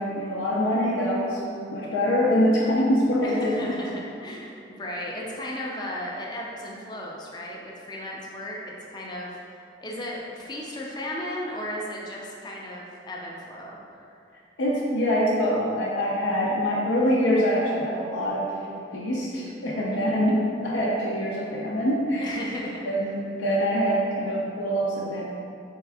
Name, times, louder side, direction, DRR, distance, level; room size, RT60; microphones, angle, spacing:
voice 1, 0.0-1.4 1.7-3.8 14.6-18.5 18.9-22.4 22.9-25.2, equal, 90° left, -5 dB, 0.5 m, -24 dB
voice 2, 3.2-4.5 4.8-13.7 14.0-14.1 19.9-20.1 22.2-22.8, left 1 dB, 20° left, -3 dB, 0.4 m, -35 dB
3.6 x 3.4 x 3.4 m, 2.5 s
head